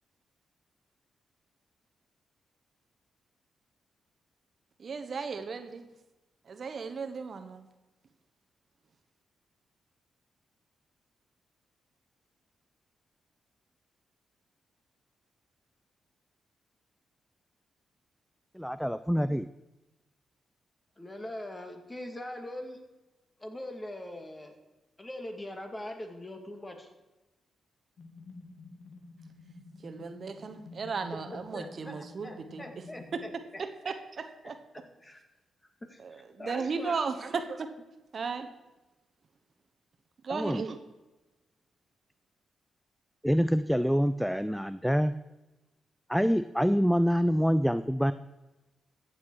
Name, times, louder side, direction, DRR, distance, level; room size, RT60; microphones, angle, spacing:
voice 1, 4.8-5.8 6.5-7.6 29.8-32.6 33.1-33.2 33.6-34.5 36.0-37.7 38.1-38.5 40.2-40.8, right 5 dB, 55° right, 8 dB, 1.1 m, -35 dB
voice 2, 18.5-19.5 40.3-40.6 43.2-45.1 46.1-48.1, equal, ahead, 14 dB, 0.4 m, -26 dB
voice 3, 21.0-22.8 23.4-24.5 25.0-26.9 31.3-33.9 35.0-35.2 35.9-37.1, left 1 dB, 20° left, 4 dB, 2.3 m, -42 dB
sound 1, 28.0-33.2, left 3 dB, 60° left, 2.3 m, -50 dB
14.0 x 7.6 x 4.8 m, 1.1 s
supercardioid pair, 55°, 0 cm